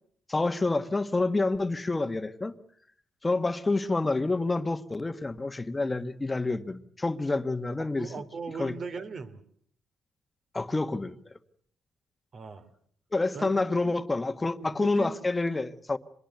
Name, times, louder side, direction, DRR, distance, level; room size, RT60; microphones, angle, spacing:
voice 1, 0.3-2.5 3.2-8.1 8.6-8.8 10.5-11.2 13.1-16.0, left 3 dB, 20° left, 1.5 m, -28 dB
voice 2, 7.8-9.4 12.3-12.7 13.3-13.9 14.6-15.2, right 4 dB, 50° right, 2.7 m, -39 dB
26.0 x 21.5 x 8.1 m
cardioid pair, 90°, 0 cm